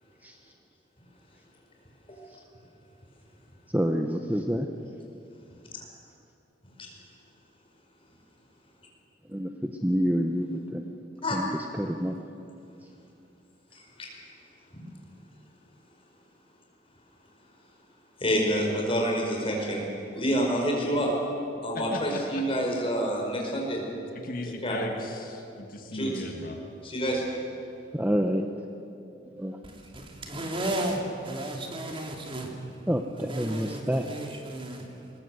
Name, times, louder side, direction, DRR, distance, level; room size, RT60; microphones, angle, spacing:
voice 1, 3.7-4.7 9.3-10.9 11.3-12.2 27.9-28.5 29.4-29.6 32.9-34.1, equal, 10° right, 4 dB, 0.8 m, -28 dB
voice 2, 18.2-19.8 20.1-21.1 21.6-23.8 24.6-24.8 25.9-26.2 26.8-27.2, equal, 30° left, -1 dB, 5.0 m, -27 dB
voice 3, 21.7-22.4 24.1-26.6, left 1 dB, 50° left, 3 dB, 1.7 m, -36 dB
voice 4, 29.6-32.8 33.2-35.1, right 1 dB, 30° right, 1 dB, 2.7 m, -34 dB
21.0 x 20.5 x 7.8 m, 2.7 s
head